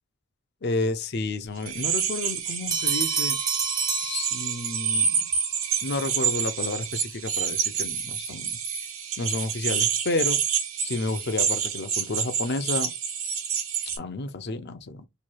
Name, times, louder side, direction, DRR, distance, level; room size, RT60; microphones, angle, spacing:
voice 1, 0.6-3.4 4.0-5.3 5.8-8.6 9.2-10.4 10.8-12.9 14.0-15.1, left 3 dB, 50° left, 0.5 m, -31 dB
sound 1, 1.6-14.0, right 7 dB, 90° right, 1.2 m, -28 dB
Bell, 2.7-4.9, right 6 dB, 20° right, 0.5 m, -28 dB
3.1 x 2.3 x 4.3 m
head